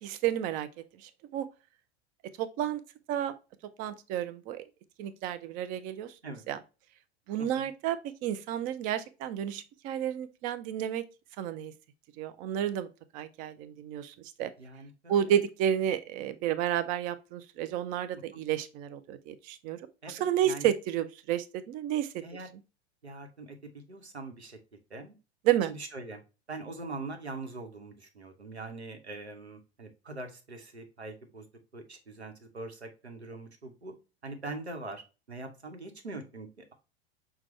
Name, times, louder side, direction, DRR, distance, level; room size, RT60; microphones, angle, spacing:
voice 1, 0.0-0.7 1.0-1.5 2.4-2.8 3.1-3.3 3.8-4.6 5.0-6.1 6.5-6.6 7.3-11.0 11.4-11.7 12.2-12.9 13.1-14.5 15.1-19.8 20.1-22.2 25.5-25.7, right 10 dB, 25° right, 0.4 m, -31 dB
voice 2, 14.6-15.4 18.1-18.4 20.0-20.7 22.2-22.5 23.0-24.6 24.9-25.1 25.7-26.2 26.5-31.5 31.7-33.9 34.2-35.0 35.3-36.7, right 3 dB, 85° right, 0.9 m, -42 dB
5.9 x 2.2 x 3.0 m
figure-of-eight pair, 85°, 32 cm